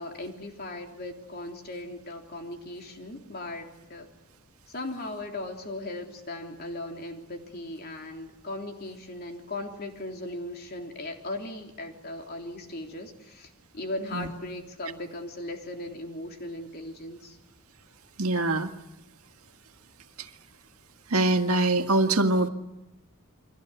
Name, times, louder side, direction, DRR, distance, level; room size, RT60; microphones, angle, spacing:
voice 1, 0.0-4.1 4.7-17.4, left 1 dB, 45° left, 3 dB, 3.5 m, -38 dB
voice 2, 18.2-18.7 20.2-20.3 21.1-22.5, right 2 dB, 90° right, 6 dB, 1.8 m, -23 dB
30.0 x 23.5 x 8.0 m, 0.92 s
head